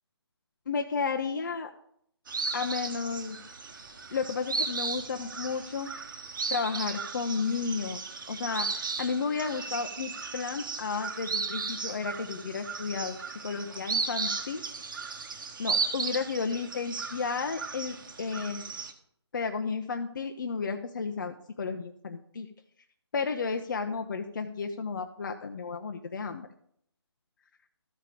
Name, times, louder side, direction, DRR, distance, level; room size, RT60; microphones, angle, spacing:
voice 1, 0.7-1.7 2.5-3.4 4.1-5.9 6.5-14.6 15.6-18.7 19.3-22.5 23.1-26.5, left 5 dB, 45° left, 5 dB, 0.6 m, -33 dB
sound 1, 2.3-18.9, right 4 dB, 50° right, 1.1 m, -35 dB
13.5 x 5.1 x 4.9 m, 0.67 s
figure-of-eight pair, 150°, 14 cm